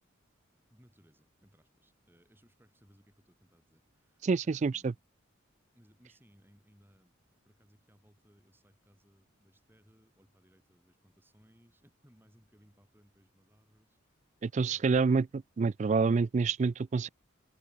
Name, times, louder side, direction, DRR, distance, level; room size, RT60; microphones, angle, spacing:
voice 1, 0.7-5.0 5.7-7.1 7.4-14.2 14.6-15.3, equal, 10° right, 6.5 m, -65 dB
voice 2, 4.2-4.9 14.4-15.3 15.6-17.1, right 4 dB, 35° right, 0.3 m, -27 dB
head